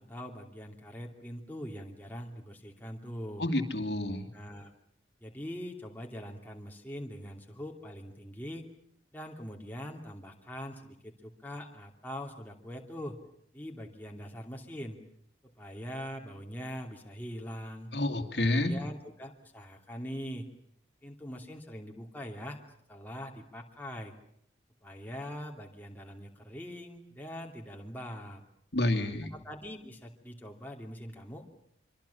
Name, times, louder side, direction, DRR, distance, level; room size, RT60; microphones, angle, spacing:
voice 1, 0.0-3.5 4.3-4.7 5.2-8.7 9.1-13.2 13.5-15.0 15.4-17.9 18.6-20.4 21.0-22.6 22.9-24.1 24.8-28.4 29.3-31.5, equal, 10° left, 1 dB, 2.8 m, -42 dB
voice 2, 3.4-4.3 17.9-18.7 28.7-29.3, left 1 dB, 65° left, 6 dB, 2.7 m, -29 dB
26.0 x 25.0 x 7.1 m, 0.68 s
head